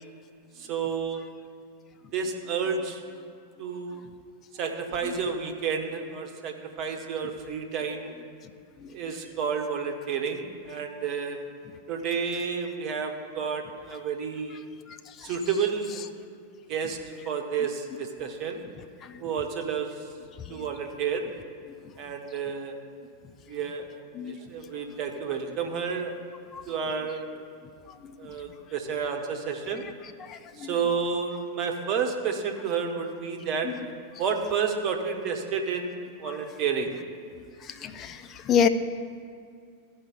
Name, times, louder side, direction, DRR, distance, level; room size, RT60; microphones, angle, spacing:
voice 1, 0.6-1.3 2.1-3.0 3.6-4.0 4.6-8.1 8.9-11.4 11.9-14.6 15.2-16.0 16.7-17.0 17.2-18.6 19.2-19.9 20.5-21.3 22.0-22.8 23.5-23.9 24.2-26.1 26.7-27.4 28.2-29.8 30.6-33.7 34.2-36.9, right 6 dB, 40° right, 4 dB, 1.0 m, -30 dB
voice 2, 30.2-30.7 36.3-36.4 37.7-38.7, left 7 dB, 30° left, 9 dB, 0.5 m, -27 dB
14.0 x 4.8 x 5.0 m, 2.3 s
figure-of-eight pair, 90°, 0 cm